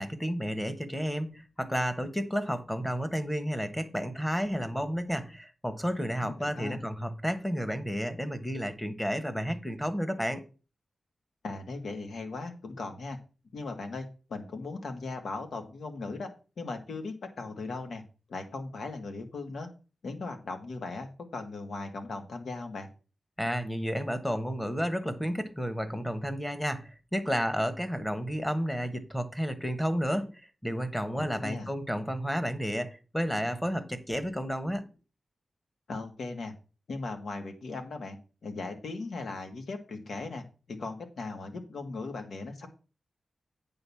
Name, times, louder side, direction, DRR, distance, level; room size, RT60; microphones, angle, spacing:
voice 1, 0.0-10.4 23.4-30.3 30.6-34.8, equal, 10° left, 1.1 m, -31 dB
voice 2, 6.2-6.8 11.4-13.2 13.5-16.3 16.6-18.0 18.3-19.7 20.0-22.9 31.2-31.7 35.9-36.5 36.9-38.2 38.4-42.7, left 3 dB, 85° left, 1.8 m, -38 dB
9.0 x 3.9 x 6.9 m
wide cardioid pair, 115°, 0 cm